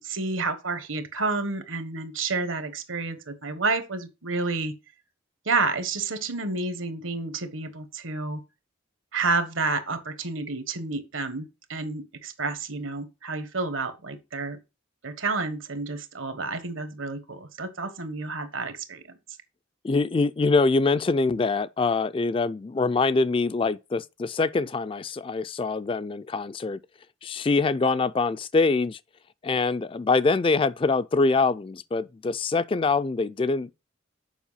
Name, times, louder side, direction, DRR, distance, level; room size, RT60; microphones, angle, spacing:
voice 1, 0.0-4.7 5.4-8.4 9.1-14.6 15.0-19.0, right 3 dB, 80° right, 1.4 m, -30 dB
voice 2, 19.8-26.8 27.2-29.0 29.4-33.8, left 3 dB, 25° left, 0.3 m, -24 dB
7.2 x 5.4 x 5.6 m
head